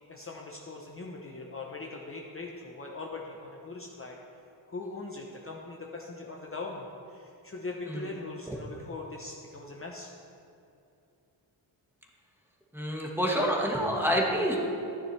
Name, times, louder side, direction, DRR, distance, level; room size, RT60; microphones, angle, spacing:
voice 1, 0.1-4.2 4.7-10.1, left 3 dB, 30° left, -1 dB, 0.7 m, -41 dB
voice 2, 12.7-14.6, equal, 5° right, -2 dB, 1.3 m, -27 dB
12.5 x 9.9 x 3.2 m, 2.6 s
wide cardioid pair, 125°, 47 cm